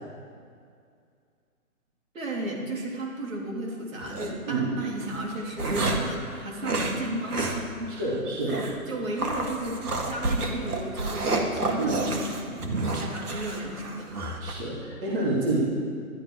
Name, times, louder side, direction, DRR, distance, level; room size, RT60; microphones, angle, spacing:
voice 1, 2.1-8.0 8.5-8.6 8.9-14.1, right 1 dB, 60° right, -3 dB, 3.5 m, -34 dB
sound 1, 4.0-4.3 5.0-6.2 6.6-7.0 7.3-7.6 7.9-8.0 8.5-8.8 9.2-14.5, right 2 dB, 80° right, 2.0 m, -29 dB
voice 2, 7.9-8.6 11.8-11.9 14.4-15.6, right 2 dB, 35° right, -5 dB, 2.9 m, -28 dB
13.0 x 11.0 x 4.8 m, 2.2 s
hypercardioid pair, 145°, 45 cm